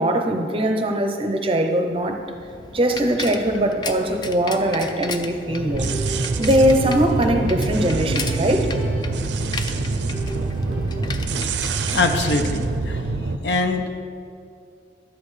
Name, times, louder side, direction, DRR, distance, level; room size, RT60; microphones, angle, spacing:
voice 1, 0.0-2.2 2.7-8.7 11.8-11.9, right 1 dB, 30° right, 5 dB, 0.6 m, -21 dB
Bicycle, 1.9-12.8, left 4 dB, 25° left, 0.4 m, -36 dB
Smooth Piano Loop, 5.5-11.0, right 1 dB, 10° right, 1.1 m, -34 dB
sound 1, 5.7-13.4, right 3 dB, 80° right, 0.5 m, -25 dB
voice 2, 11.9-13.0 13.4-14.0, left 3 dB, 70° left, 5 dB, 0.7 m, -23 dB
11.5 x 8.6 x 3.2 m, 2.4 s
head